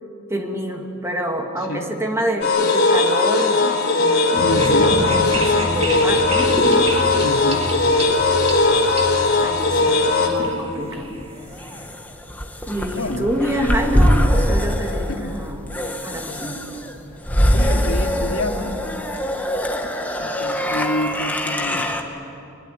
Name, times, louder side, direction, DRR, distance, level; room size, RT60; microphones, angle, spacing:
voice 1, 0.3-6.6 9.4-11.2 12.7-15.6 16.0-16.7 19.8-19.9, equal, 15° right, 2 dB, 2.4 m, -27 dB
voice 2, 1.6-1.9 4.4-5.0 7.2-7.7 12.9-13.4 15.1-15.4 17.5-18.7 20.2-21.9, left 1 dB, 90° left, 2 dB, 2.6 m, -28 dB
sound 1, 2.4-10.3, left 3 dB, 50° left, 3.9 m, -18 dB
sound 2, 4.4-11.9, right 1 dB, 30° right, 2.5 m, -28 dB
sound 3, 11.0-22.0, equal, 10° left, 1.9 m, -23 dB
24.0 x 21.5 x 9.3 m, 2.6 s
head